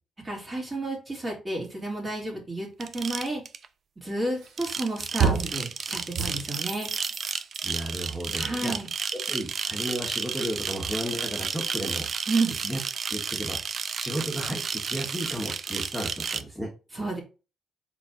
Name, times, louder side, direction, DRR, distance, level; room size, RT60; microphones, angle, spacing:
voice 1, 0.2-2.7 2.9-3.4 4.0-6.9 8.4-8.9 12.3-12.5 16.9-17.2, right 2 dB, 25° right, -1 dB, 2.8 m, -31 dB
sound 1, 2.8-3.7 4.5-16.4, right 6 dB, 50° right, 0.4 m, -32 dB
sound 2, 4.4-4.8 5.2-5.6 6.1-7.6, right 6 dB, 75° right, 1.3 m, -28 dB
voice 2, 7.6-8.8 9.3-12.1 12.6-12.8 13.1-13.6 14.0-16.7, right 1 dB, ahead, -3 dB, 1.5 m, -33 dB
4.4 x 4.3 x 2.6 m, 0.32 s
cardioid pair, 90°, 0 cm